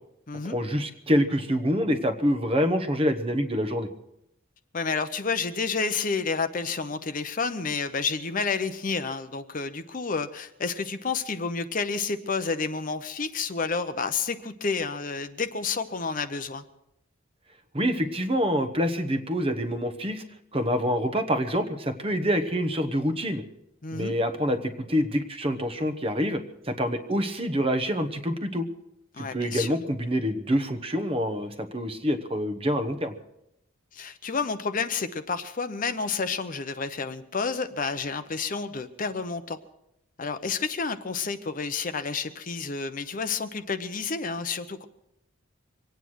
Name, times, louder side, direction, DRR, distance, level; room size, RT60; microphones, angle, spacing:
voice 1, 0.4-3.9 17.7-20.2 20.5-23.4 23.9-26.4 26.7-28.7 29.2-33.2, equal, 25° right, 9 dB, 1.0 m, -26 dB
voice 2, 4.7-16.6 23.8-24.1 29.1-29.7 33.9-39.6 40.2-44.8, left 4 dB, 40° left, 10 dB, 0.7 m, -30 dB
24.0 x 9.2 x 6.3 m, 0.86 s
head